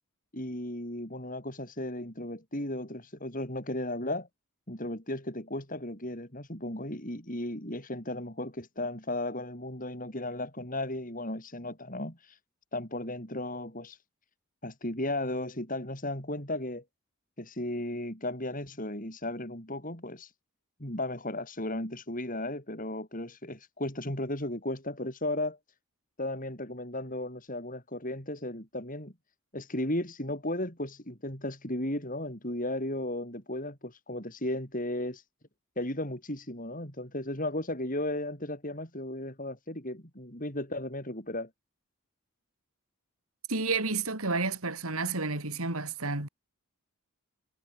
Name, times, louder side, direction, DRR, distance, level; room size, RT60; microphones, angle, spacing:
voice 1, 0.3-4.3 4.7-12.4 12.7-14.0 14.6-16.8 17.4-20.3 20.8-25.6 26.2-29.1 29.5-35.2 35.8-41.5, left 1 dB, 40° left, 7.9 m, -35 dB
voice 2, 43.5-46.3, right 3 dB, 75° right, 4.1 m, -30 dB
head